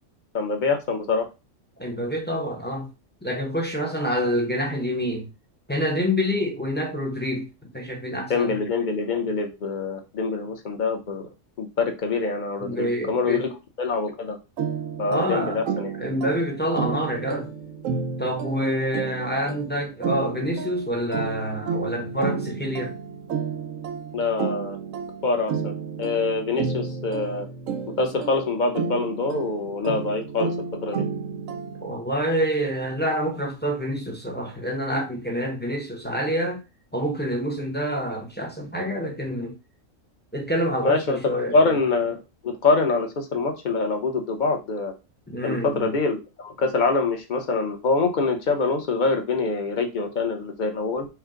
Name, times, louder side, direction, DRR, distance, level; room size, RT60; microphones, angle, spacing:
voice 1, 0.3-1.3 8.3-11.2 11.6-13.5 13.8-14.4 15.0-15.9 24.1-24.8 25.2-25.7 26.0-27.5 28.0-30.5 30.8-31.0 40.8-41.2 41.5-44.9 45.4-51.1, left 3 dB, 45° left, 0.8 m, -25 dB
voice 2, 1.8-2.9 3.2-5.3 5.7-8.6 12.6-13.5 15.1-15.6 16.0-17.5 18.2-22.9 31.8-36.6 36.9-39.6 40.3-41.8 45.3-45.9, equal, 10° left, 0.6 m, -27 dB
sound 1, 14.6-32.0, right 5 dB, 85° right, 1.1 m, -31 dB
4.4 x 2.2 x 3.7 m
omnidirectional pair, 1.3 m